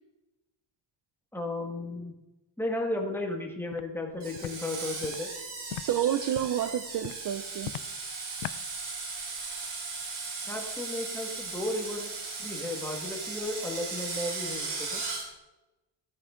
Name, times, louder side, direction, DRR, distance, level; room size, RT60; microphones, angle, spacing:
voice 1, 1.3-2.1 2.6-5.3 10.4-12.1 12.4-15.0, left 1 dB, 5° left, 0 dB, 1.7 m, -34 dB
Walk footsteps, 3.7-3.9 4.4-4.5 5.0-5.2 5.7-5.9 6.3-6.6 7.0-7.2 7.6-7.9 8.4-8.6, left 15 dB, 80° left, 0.6 m, -38 dB
Screech, 4.2-15.2, right 4 dB, 90° right, 4.5 m, -37 dB
voice 2, 5.7-7.7, right 10 dB, 45° right, 10 dB, 0.5 m, -29 dB
15.5 x 10.0 x 3.8 m, 1.0 s
cardioid pair, 165°, 46 cm